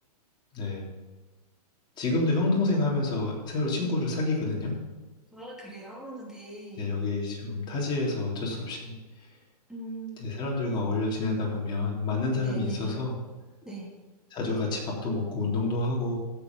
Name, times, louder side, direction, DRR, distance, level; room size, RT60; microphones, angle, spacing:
voice 1, 0.5-0.9 2.0-4.8 6.8-9.0 10.2-13.2 14.3-16.2, left 2 dB, 20° left, -3 dB, 3.5 m, -28 dB
voice 2, 5.3-6.9 9.7-10.2 12.3-13.0 13.6-13.9, right 2 dB, 5° right, -3 dB, 2.9 m, -40 dB
15.0 x 7.6 x 5.5 m, 1.3 s
hypercardioid pair, 140°, 21 cm